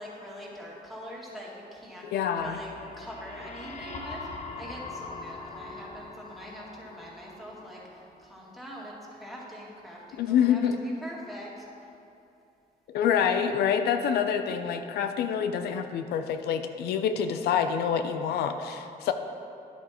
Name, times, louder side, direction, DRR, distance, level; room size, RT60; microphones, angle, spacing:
voice 1, 0.0-11.7, equal, ahead, -5 dB, 2.2 m, -43 dB
voice 2, 2.1-2.6 10.2-10.8 12.9-19.1, left 8 dB, 90° left, 8 dB, 0.4 m, -26 dB
sound 1, 2.4-8.3, left 3 dB, 45° left, 0.8 m, -42 dB
10.5 x 7.8 x 3.0 m, 2.6 s
cardioid pair, 85°, 16 cm